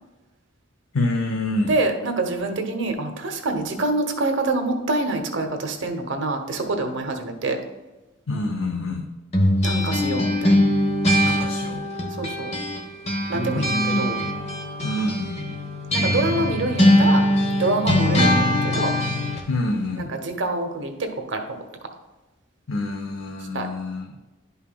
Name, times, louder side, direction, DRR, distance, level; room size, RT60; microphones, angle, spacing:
voice 1, 0.9-1.7 8.3-9.0 11.2-11.9 13.5-14.0 14.8-15.5 19.5-20.1 22.7-24.1, left 2 dB, 85° left, 3 dB, 0.7 m, -26 dB
voice 2, 1.6-7.6 9.6-10.6 12.2-12.5 13.3-14.2 15.9-17.2 17.6-18.9 19.9-21.4 23.5-23.7, right 2 dB, 70° right, 5 dB, 1.0 m, -26 dB
sound 1, 9.3-12.8 13.1-19.5, left 1 dB, 30° left, 0.9 m, -21 dB
11.0 x 5.6 x 2.3 m, 1.1 s
head